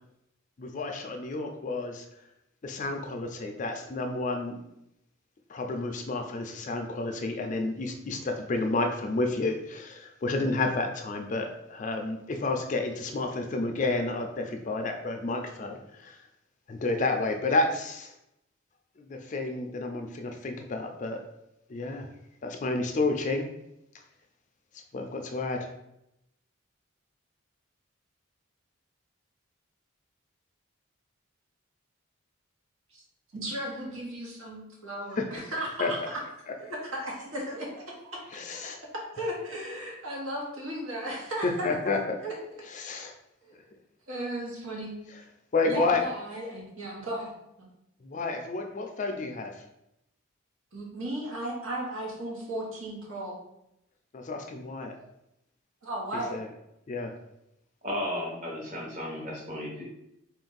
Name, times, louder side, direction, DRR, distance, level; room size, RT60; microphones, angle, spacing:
voice 1, 0.6-2.1 2.6-4.6 5.5-16.2 16.7-18.1 19.0-21.2 21.7-22.1 22.4-23.5 24.9-25.7 35.2-35.3 35.8-35.9 38.3-38.8 41.4-42.2 42.7-43.1 45.5-46.0 48.0-49.6 54.1-55.0 56.3-56.5 56.9-57.1, left 3 dB, 35° left, 4 dB, 0.4 m, -30 dB
voice 2, 33.3-36.2 36.6-38.2 38.5-41.7 42.2-42.3 42.8-42.9 43.4-43.6 44.1-44.9 45.7-47.3 47.6-47.7 50.7-53.4 55.8-56.4, right 1 dB, 80° right, -3 dB, 1.2 m, -35 dB
voice 3, 57.8-59.8, left 1 dB, 35° right, -2 dB, 1.1 m, -34 dB
3.8 x 2.5 x 3.9 m, 0.84 s
head